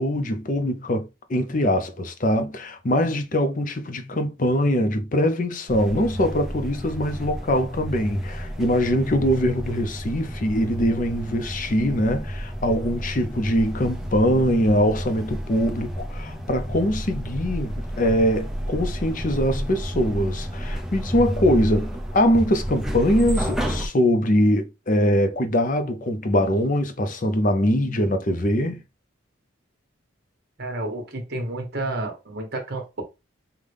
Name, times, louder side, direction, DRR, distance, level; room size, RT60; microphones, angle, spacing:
voice 1, 0.0-28.8, equal, 40° left, 0.6 m, -22 dB
sound 1, 5.7-23.9, equal, ahead, 0.6 m, -31 dB
voice 2, 30.6-33.0, right 2 dB, 50° right, 1.2 m, -30 dB
5.4 x 2.3 x 3.4 m
head